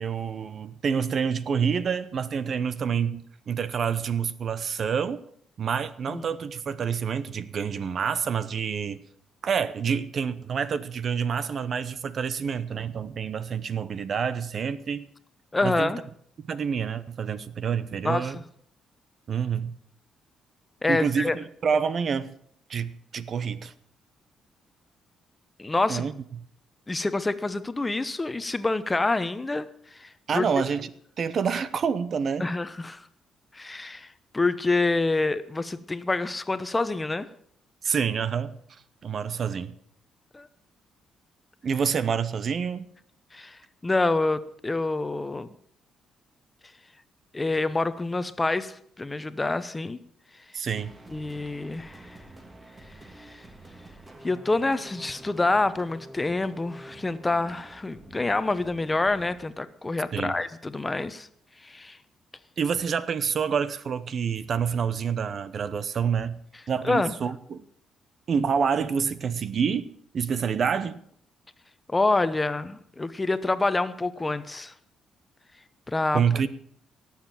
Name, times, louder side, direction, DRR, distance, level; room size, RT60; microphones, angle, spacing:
voice 1, 0.0-5.2 5.6-9.0 9.4-15.1 15.6-15.9 16.4-18.4 19.3-19.7 20.9-22.3 22.7-23.7 25.9-26.4 30.3-30.9 31.2-32.5 37.8-38.6 39.0-39.8 41.6-42.9 50.5-50.9 60.1-60.4 62.6-66.4 66.7-67.6 68.3-71.0 76.1-76.5, right 6 dB, 55° right, 0.8 m, -27 dB
voice 2, 15.5-16.0 18.0-18.4 20.8-21.4 25.6-26.1 26.9-30.6 32.4-33.1 33.5-37.3 40.3-40.5 43.3-45.5 47.3-50.0 51.1-52.2 53.2-53.4 54.2-61.3 61.6-62.0 66.8-67.1 71.9-74.7 75.9-76.2, left 2 dB, 20° left, 0.9 m, -27 dB
sound 1, 50.7-59.5, right 2 dB, 25° right, 2.2 m, -48 dB
18.0 x 7.4 x 7.4 m
cardioid pair, 90°, 0 cm